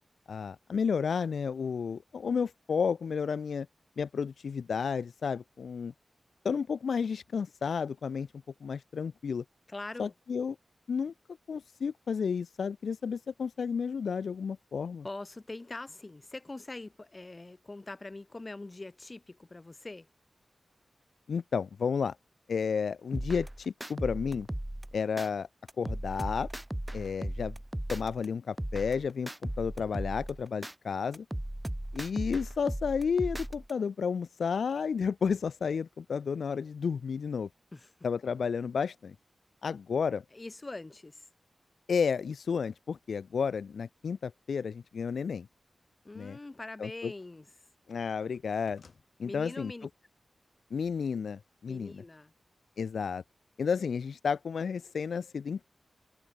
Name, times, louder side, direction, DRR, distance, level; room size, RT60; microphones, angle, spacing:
voice 1, 0.3-3.7 4.0-5.9 6.4-8.3 8.6-9.4 10.0-10.6 10.9-11.1 11.5-15.0 21.3-22.2 22.5-24.5 24.9-25.5 25.8-26.5 26.9-27.5 27.9-31.2 31.9-37.5 38.0-39.1 39.6-40.2 41.9-45.5 46.2-46.4 46.8-47.1 47.9-48.8 49.2-49.7 50.7-51.9 52.8-53.2 53.6-55.6, left 6 dB, 90° left, 0.9 m, -32 dB
voice 2, 9.7-10.1 15.0-20.1 37.7-37.9 40.3-41.3 46.0-47.5 49.2-49.9 51.7-52.3, left 2 dB, 35° left, 7.7 m, -43 dB
sound 1, 23.1-25.3 25.7-28.3 28.6-30.7 31.1-33.7, right 1 dB, 10° right, 0.4 m, -37 dB
sound 2, 46.7-47.6 47.9-49.1, left 5 dB, 70° left, 6.8 m, -62 dB
cardioid pair, 65°, 0 cm